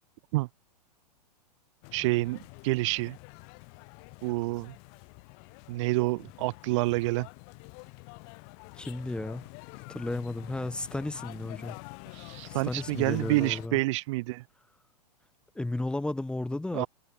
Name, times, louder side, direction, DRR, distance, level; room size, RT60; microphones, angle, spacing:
sound 1, 1.8-13.7, left 40 dB or more, 40° left, 5.9 m, -47 dB
voice 1, 1.9-3.2 4.2-4.7 5.7-7.3 12.1-14.4 16.7-16.9, right 21 dB, 45° right, 1.0 m, -28 dB
voice 2, 8.8-9.5 9.9-11.8 12.5-13.8 15.5-16.9, left 2 dB, 5° left, 1.2 m, -34 dB
figure-of-eight pair, 105°, 21 cm